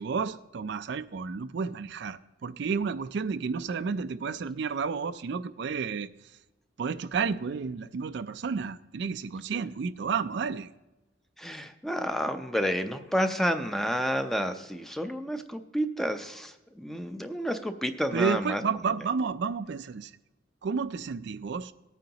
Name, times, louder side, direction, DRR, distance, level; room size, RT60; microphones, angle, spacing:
voice 1, 0.0-6.1 6.8-10.7 18.1-20.2 20.6-21.7, right 5 dB, 65° right, 12 dB, 0.4 m, -31 dB
voice 2, 11.4-18.6, equal, ahead, 8 dB, 0.5 m, -30 dB
18.0 x 9.1 x 2.9 m, 1.0 s
head